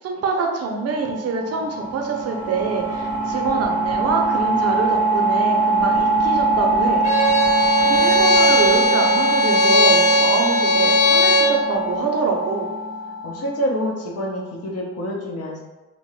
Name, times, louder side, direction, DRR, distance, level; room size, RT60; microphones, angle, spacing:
voice 1, 0.0-7.0 7.9-12.7, right 4 dB, 55° right, 2 dB, 0.6 m, -25 dB
sound 1, 0.7-14.2, right 1 dB, 85° left, 1.2 m, -22 dB
Bowed string instrument, 7.0-11.6, equal, 25° left, 0.8 m, -18 dB
voice 2, 13.2-15.6, equal, 55° left, -1 dB, 0.7 m, -27 dB
2.5 x 2.2 x 3.0 m, 1.1 s
cardioid pair, 90°, 30 cm